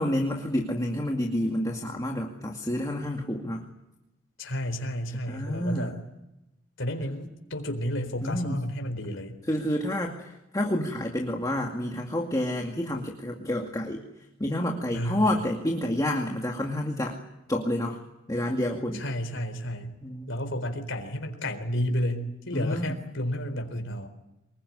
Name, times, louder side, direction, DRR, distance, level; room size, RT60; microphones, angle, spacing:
voice 1, 0.0-3.7 5.3-6.0 8.2-8.6 9.5-14.0 14.4-17.2 17.5-18.0 18.3-19.0 20.0-20.3 22.5-22.9, left 1 dB, 20° left, 1 dB, 2.3 m, -29 dB
voice 2, 4.4-6.0 6.8-9.4 14.9-15.4 18.9-19.9 20.3-24.1, equal, 65° left, 5 dB, 4.1 m, -31 dB
25.0 x 21.5 x 9.8 m, 0.92 s
head